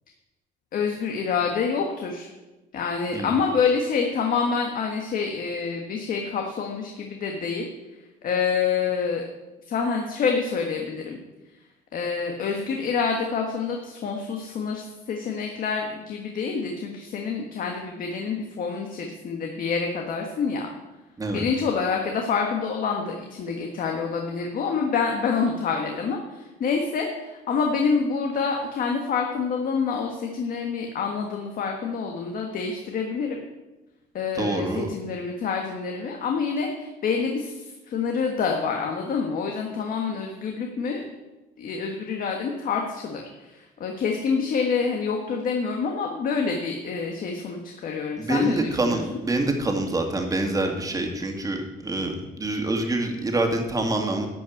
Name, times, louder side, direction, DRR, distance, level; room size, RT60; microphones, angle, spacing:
voice 1, 0.7-2.3 2.7-7.7 8.2-9.2 9.7-11.2 11.9-20.7 21.3-33.4 34.1-41.0 41.6-49.2, left 5 dB, 55° left, 2 dB, 1.5 m, -27 dB
voice 2, 34.4-34.9 48.2-52.1 52.4-54.3, right 2 dB, 20° right, 3 dB, 2.2 m, -26 dB
12.0 x 5.6 x 8.4 m, 1.1 s
cardioid pair, 110°, 17 cm